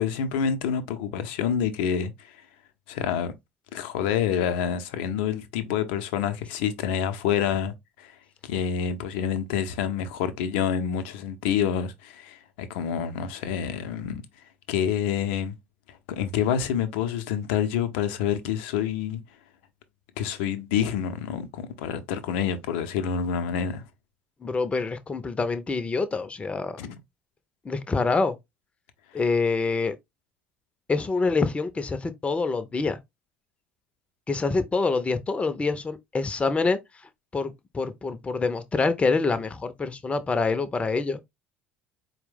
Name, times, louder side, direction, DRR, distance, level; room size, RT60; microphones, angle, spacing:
voice 1, 0.0-2.4 2.9-3.3 3.7-8.1 8.4-14.2 14.7-15.5 15.9-19.2 20.2-23.8 26.8-27.0, left 8 dB, 65° left, 0.5 m, -27 dB
voice 2, 24.4-26.8 27.6-28.3 29.1-30.0 30.9-33.0 34.3-36.8 37.3-41.2, left 4 dB, 20° left, 0.5 m, -26 dB
4.4 x 2.1 x 3.4 m
figure-of-eight pair, 60°, 6 cm